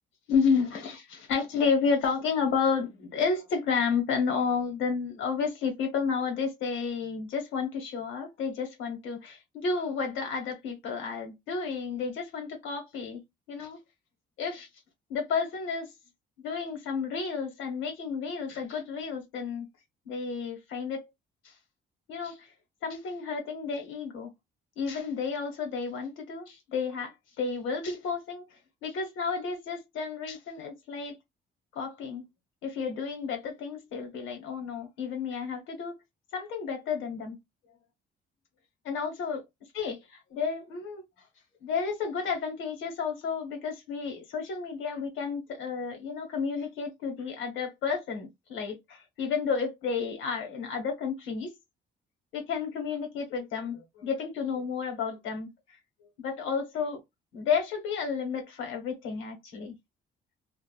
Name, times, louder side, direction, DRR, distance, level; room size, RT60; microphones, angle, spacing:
voice 1, 0.3-13.2 13.5-13.8 14.4-14.7 15.1-15.9 16.4-19.7 20.0-21.0 22.1-22.5 22.8-24.3 24.8-28.4 28.8-31.2 31.7-32.2 32.6-35.9 36.3-37.4 38.8-39.4 39.7-40.0 40.3-41.0 41.6-51.5 52.3-55.5 56.2-57.0 57.3-59.7, left 5 dB, 90° left, 1.1 m, -31 dB
2.6 x 2.3 x 2.3 m
cardioid pair, 90°, 20 cm